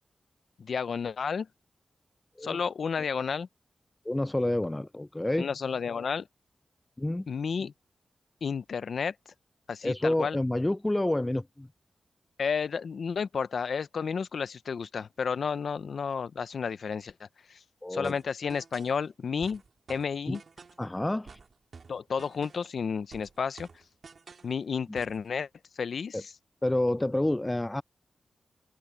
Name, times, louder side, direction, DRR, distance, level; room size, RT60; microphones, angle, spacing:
voice 1, 0.6-1.5 2.4-3.5 5.4-6.3 7.3-7.7 8.4-9.1 9.7-10.4 12.4-17.6 17.9-19.6 19.9-20.4 21.9-23.7 24.4-25.5 25.8-26.3, left 6 dB, 75° left, 0.7 m, -31 dB
voice 2, 4.0-5.5 7.0-7.3 9.8-11.7 17.8-18.2 20.3-20.4 20.8-21.4 26.1-26.2 26.6-27.8, left 1 dB, 15° left, 0.4 m, -28 dB
sound 1, 18.0-19.0 19.4-20.9 21.3-22.8 23.1-24.5 24.9-25.2, right 5 dB, 65° right, 2.4 m, -50 dB
open air
cardioid pair, 60°, 0 cm